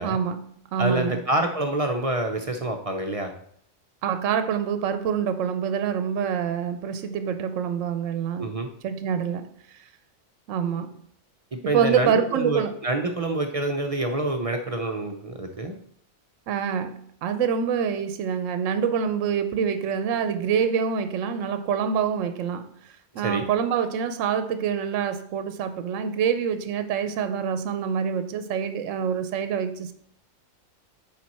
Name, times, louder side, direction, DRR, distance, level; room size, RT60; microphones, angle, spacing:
voice 1, 0.0-1.2 4.0-8.5 8.8-9.8 10.5-10.9 11.6-12.8 16.5-29.9, right 7 dB, 75° right, 0.9 m, -26 dB
voice 2, 0.8-3.3 8.4-8.7 11.5-15.8 23.2-23.4, right 2 dB, 40° right, 0.5 m, -27 dB
7.4 x 4.5 x 4.2 m
omnidirectional pair, 1.4 m